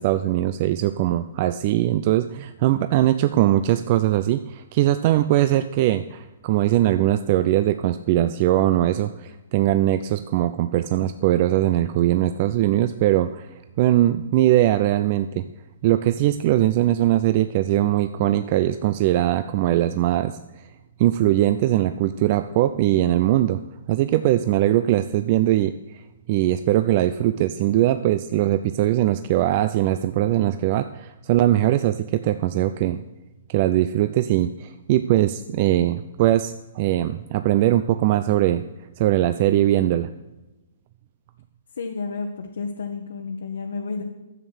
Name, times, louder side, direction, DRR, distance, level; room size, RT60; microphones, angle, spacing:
voice 1, 0.0-13.5 13.8-15.4 15.8-20.4 21.0-23.6 23.9-25.7 26.3-33.0 33.5-38.6 39.0-40.1, right 13 dB, 40° right, 11 dB, 0.4 m, -21 dB
voice 2, 41.7-44.0, left 4 dB, 80° left, 2 dB, 1.1 m, -31 dB
11.0 x 7.2 x 6.3 m, 1.1 s
hypercardioid pair, 145°, 0 cm